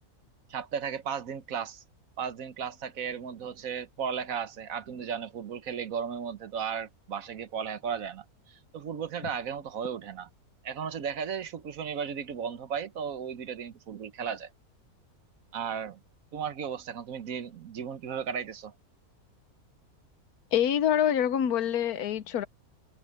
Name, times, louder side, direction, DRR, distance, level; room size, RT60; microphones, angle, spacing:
voice 1, 0.5-1.8 2.2-10.3 10.6-14.5 15.5-16.0 16.3-18.7, right 7 dB, 65° right, 1.3 m, -35 dB
voice 2, 20.5-22.5, left 9 dB, 75° left, 1.3 m, -26 dB
omnidirectional pair, 1.6 m